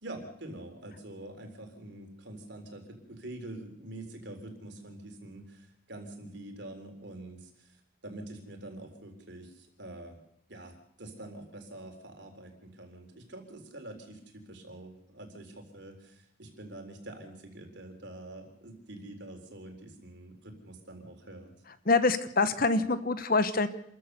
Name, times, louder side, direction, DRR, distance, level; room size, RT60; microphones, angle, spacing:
voice 1, 0.0-10.2 10.5-21.5, right 1 dB, 60° right, 4 dB, 3.9 m, -46 dB
voice 2, 21.9-23.7, left 3 dB, 45° left, 12 dB, 1.1 m, -25 dB
27.0 x 14.0 x 6.8 m, 0.74 s
head